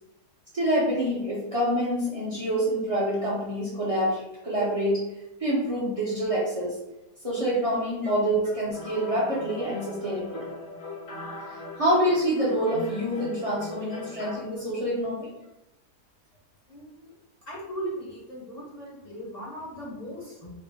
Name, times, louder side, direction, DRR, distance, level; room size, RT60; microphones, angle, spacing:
voice 1, 0.5-5.0 5.4-6.8 7.2-10.5 11.8-15.3, equal, 30° right, -6 dB, 0.6 m, -26 dB
sound 1, 8.7-14.3, left 2 dB, 80° left, 1.8 m, -39 dB
voice 2, 16.7-17.1 17.5-20.5, right 1 dB, 35° left, -6 dB, 0.7 m, -38 dB
3.7 x 2.1 x 3.4 m, 0.92 s
omnidirectional pair, 1.7 m